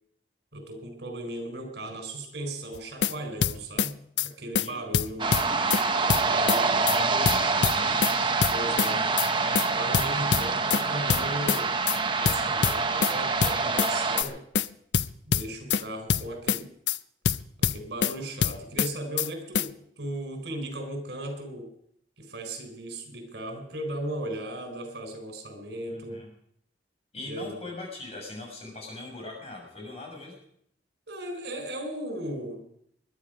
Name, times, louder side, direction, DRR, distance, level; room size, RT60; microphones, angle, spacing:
voice 1, 0.5-5.3 6.2-6.8 8.5-9.0 9.7-11.7 12.2-14.4 15.3-16.7 17.6-21.7 22.2-26.2 27.2-27.6 31.1-32.6, right 1 dB, 70° right, 5 dB, 4.5 m, -36 dB
sound 1, 2.8-3.1 3.4-3.9 4.2-4.3 4.6-4.7 4.9-5.8 6.1-6.6 6.9-7.0 7.3-8.1 8.4-8.9 9.2-9.3 9.6-9.7 9.9-10.8 11.1-11.6 11.9-12.0 12.3-13.1 13.4-13.9 14.2-14.3 14.6-14.7 14.9-15.8 16.1-16.6 16.9-17.0 17.3-18.1 18.4-18.9 19.2-19.3 19.6-19.7, left 7 dB, 75° left, 0.5 m, -25 dB
voice 2, 4.6-4.9 5.3-5.6 6.3-8.2 8.5-9.2 25.9-26.3 27.1-30.4, left 2 dB, 35° left, 0 dB, 6.5 m, -41 dB
sound 2, 5.2-14.2, right 4 dB, 25° right, 0.9 m, -26 dB
21.5 x 11.0 x 5.2 m, 0.69 s
head